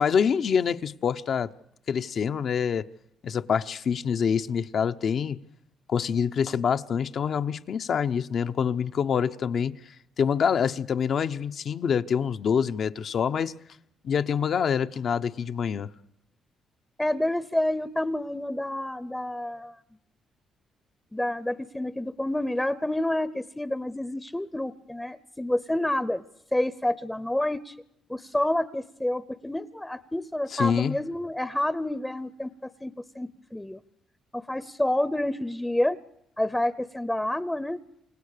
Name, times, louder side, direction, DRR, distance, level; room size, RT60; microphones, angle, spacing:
voice 1, 0.0-1.5 1.9-2.9 3.2-5.4 5.9-9.7 10.2-13.5 14.0-15.9 30.5-31.0, left 7 dB, 55° left, 0.9 m, -26 dB
voice 2, 17.0-19.8 21.1-26.2 26.5-27.7 28.1-32.5 32.8-33.8 34.3-36.0 36.4-37.8, left 1 dB, 10° left, 0.8 m, -28 dB
28.5 x 16.5 x 6.7 m
cardioid pair, 90°, 0 cm